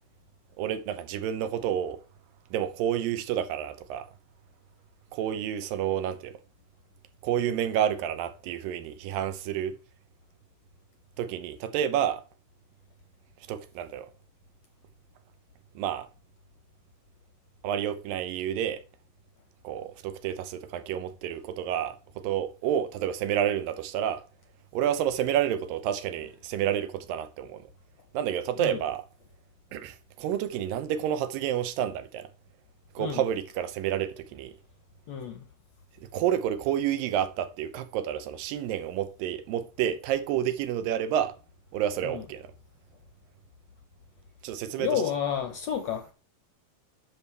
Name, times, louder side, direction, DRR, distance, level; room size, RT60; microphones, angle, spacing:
voice 1, 0.6-2.0 2.5-4.1 5.1-6.3 7.2-9.8 11.2-12.2 13.5-14.1 15.8-16.1 17.6-18.8 19.6-22.0 22.2-24.2 24.7-27.7 28.1-29.0 29.7-32.3 33.0-34.5 36.0-41.3 41.7-42.5 44.4-45.0, right 10 dB, 85° right, 2.5 m, -29 dB
voice 2, 35.1-35.4 42.0-42.2 44.8-46.1, left 8 dB, 70° left, 1.7 m, -30 dB
10.5 x 6.4 x 3.3 m
omnidirectional pair, 3.9 m